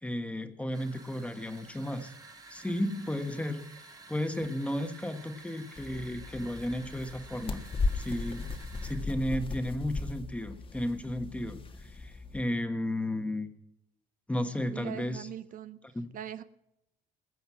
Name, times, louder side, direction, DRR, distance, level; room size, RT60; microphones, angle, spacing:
voice 1, 0.0-2.1 2.5-3.6 4.1-7.6 7.9-8.5 8.8-13.5 14.3-15.3 15.9-16.1, left 1 dB, 5° left, 7 dB, 1.4 m, -33 dB
sound 1, 0.7-9.1, right 3 dB, 20° right, 1.9 m, -52 dB
sound 2, 5.8-12.4, left 3 dB, 30° left, 1.4 m, -37 dB
voice 2, 14.7-15.8 16.1-16.4, right 10 dB, 55° right, 13 dB, 0.7 m, -40 dB
20.0 x 8.0 x 6.2 m, 0.83 s
cardioid pair, 110°, 17 cm